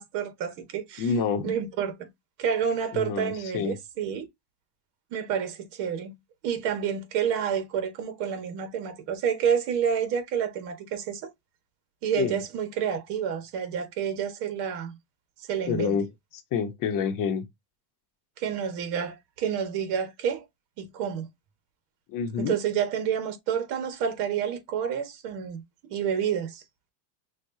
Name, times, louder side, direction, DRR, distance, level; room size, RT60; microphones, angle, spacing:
voice 1, 0.0-1.1 1.4-2.1 2.4-4.3 5.1-6.1 6.4-11.3 12.0-15.0 15.5-16.0 18.4-20.4 20.8-21.3 22.4-25.6 25.9-26.6, right 8 dB, 60° right, 1.6 m, -29 dB
voice 2, 1.0-1.5 2.9-3.8 12.2-12.4 15.7-16.1 16.5-17.4 22.1-22.5, left 6 dB, 45° left, 1.1 m, -27 dB
6.4 x 2.5 x 2.7 m
cardioid pair, 140°, 46 cm